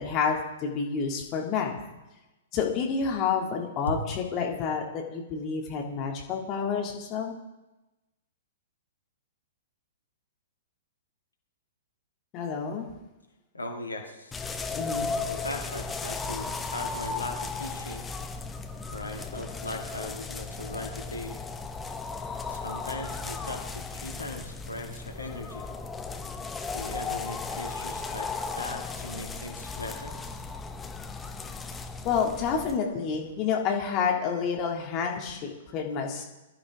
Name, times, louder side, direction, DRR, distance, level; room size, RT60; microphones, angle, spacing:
voice 1, 0.0-1.8 2.5-7.3 12.3-12.9 14.8-15.3 32.0-36.3, left 6 dB, 30° left, 1 dB, 2.2 m, -29 dB
voice 2, 13.5-14.4 15.3-18.1 18.9-21.4 22.5-25.7 26.7-30.1, left 1 dB, 75° left, 2 dB, 2.3 m, -38 dB
sound 1, 14.3-32.8, left 4 dB, 10° left, 0.9 m, -36 dB
20.5 x 12.5 x 3.6 m, 1.0 s
figure-of-eight pair, 110°, 0 cm